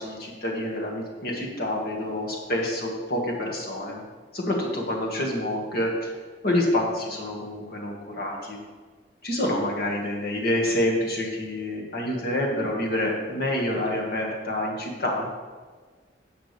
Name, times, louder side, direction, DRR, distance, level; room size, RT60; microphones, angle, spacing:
voice 1, 0.0-4.0 4.3-6.1 6.4-8.6 9.2-15.3, left 1 dB, 55° left, -1 dB, 1.9 m, -27 dB
11.0 x 7.7 x 3.4 m, 1.5 s
head